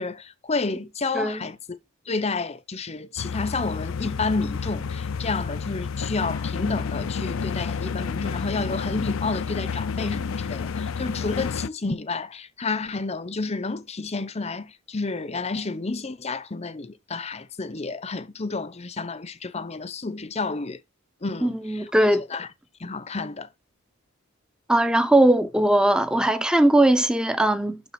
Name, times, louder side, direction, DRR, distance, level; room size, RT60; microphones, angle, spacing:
voice 1, 0.0-1.8 2.1-20.8 21.2-21.9 22.3-22.5 22.8-23.5, left 3 dB, 30° left, 0.8 m, -30 dB
sound 1, 3.2-11.7, left 5 dB, 70° left, 0.5 m, -30 dB
voice 2, 21.4-22.3 24.7-27.8, right 1 dB, 5° right, 0.7 m, -19 dB
11.5 x 3.9 x 5.8 m
head